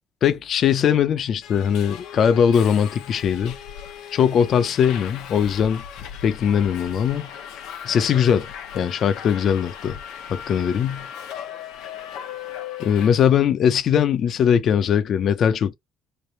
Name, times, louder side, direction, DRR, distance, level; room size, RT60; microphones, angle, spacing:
voice 1, 0.2-3.6 4.1-5.8 6.2-7.3 7.8-8.5 8.7-10.0 10.3-11.1 12.8-15.7, left 8 dB, 50° left, 0.5 m, -20 dB
Subway metro underground, 1.4-13.1, left 8 dB, 90° left, 0.9 m, -37 dB
3.3 x 2.6 x 4.2 m
cardioid pair, 135°, 0 cm